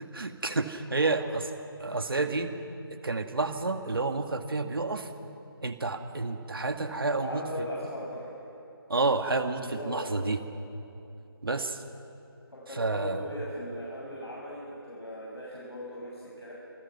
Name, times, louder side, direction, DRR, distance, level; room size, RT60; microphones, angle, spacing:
voice 1, 0.0-1.5 1.8-2.5 2.9-5.1 5.6-7.7 8.9-10.4 11.4-11.8 12.8-13.2, right 3 dB, 65° right, 6 dB, 2.1 m, -30 dB
voice 2, 6.9-8.3 9.5-10.1 12.5-16.5, left 1 dB, 85° left, -6 dB, 7.1 m, -39 dB
28.5 x 21.0 x 6.1 m, 2.9 s
figure-of-eight pair, 165°, 13 cm